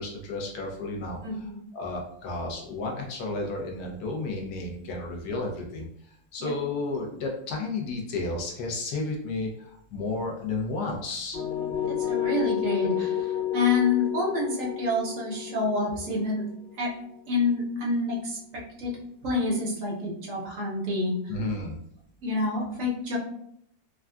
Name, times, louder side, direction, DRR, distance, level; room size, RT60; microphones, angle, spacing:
voice 1, 0.0-1.2 1.7-5.9 6.3-11.4 21.3-21.8, left 2 dB, 65° left, -1 dB, 1.1 m, -32 dB
voice 2, 1.2-1.6 6.4-6.5 11.9-16.4 16.8-16.9 17.3-18.9 19.2-21.3 22.2-23.2, left 3 dB, 60° right, -3 dB, 1.0 m, -28 dB
sound 1, 11.3-17.2, left 10 dB, 85° left, 1.5 m, -30 dB
3.6 x 2.3 x 2.2 m, 0.69 s
omnidirectional pair, 1.9 m